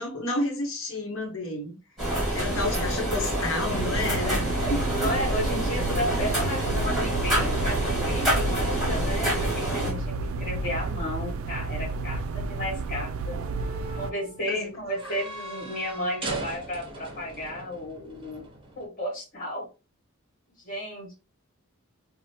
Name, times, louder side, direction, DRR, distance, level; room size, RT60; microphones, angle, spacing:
voice 1, 0.0-1.8 2.0-5.5 14.5-14.7 15.0-15.1, left 2 dB, 70° left, 0.9 m, -31 dB
sound 1, 2.0-9.9, right 1 dB, ahead, 1.4 m, -27 dB
sound 2, 3.7-14.1, right 3 dB, 75° right, 0.3 m, -32 dB
voice 2, 4.6-13.4 14.0-18.5 18.7-19.6 20.6-21.1, equal, 40° left, 1.6 m, -33 dB
sound 3, 13.2-18.9, right 2 dB, 25° right, 0.6 m, -41 dB
3.0 x 2.1 x 2.8 m
head